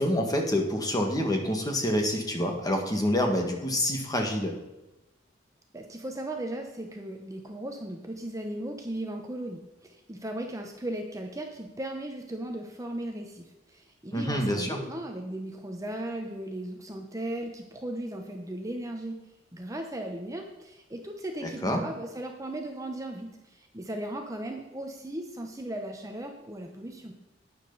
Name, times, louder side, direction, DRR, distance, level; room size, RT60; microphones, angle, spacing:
voice 1, 0.0-4.5 14.1-14.8 21.4-21.8, left 1 dB, 20° left, 2 dB, 1.8 m, -27 dB
voice 2, 5.7-19.2 19.5-27.1, right 1 dB, 15° right, 3 dB, 0.9 m, -37 dB
12.0 x 9.7 x 4.1 m, 1.0 s
head